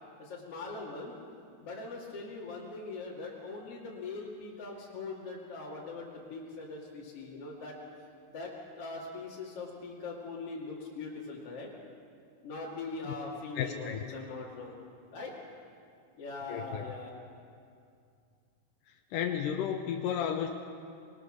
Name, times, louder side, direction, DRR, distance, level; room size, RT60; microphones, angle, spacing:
voice 1, 0.2-1.1 1.6-7.8 8.3-11.7 12.4-14.8 15.1-15.3 16.2-17.1, left 3 dB, 45° left, -5 dB, 3.1 m, -41 dB
voice 2, 13.6-14.0 16.5-16.9 19.1-20.5, left 9 dB, 75° left, 3 dB, 2.4 m, -33 dB
25.5 x 21.0 x 6.5 m, 2.4 s
omnidirectional pair, 4.1 m